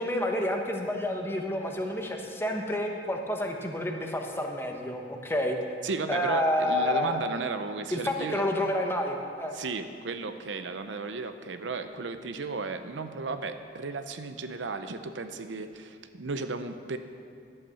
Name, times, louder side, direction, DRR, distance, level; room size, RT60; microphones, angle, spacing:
voice 1, 0.0-5.6 6.1-7.2 7.9-9.5, left 1 dB, 15° left, 2 dB, 1.0 m, -29 dB
voice 2, 5.8-8.4 9.5-17.0, right 4 dB, 80° right, 9 dB, 0.7 m, -34 dB
11.5 x 8.2 x 7.0 m, 2.3 s
head